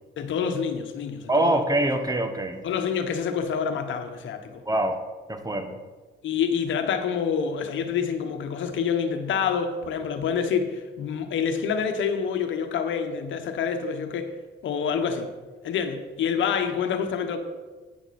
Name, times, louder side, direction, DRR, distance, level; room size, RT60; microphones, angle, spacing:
voice 1, 0.2-1.6 2.6-4.6 6.2-14.3 14.6-15.3 15.6-17.4, left 7 dB, 75° left, 7 dB, 1.2 m, -27 dB
voice 2, 1.3-2.6 4.7-5.0 5.3-5.8, right 1 dB, 20° right, 7 dB, 1.2 m, -24 dB
11.0 x 9.6 x 4.2 m, 1.3 s
cardioid pair, 90°, 20 cm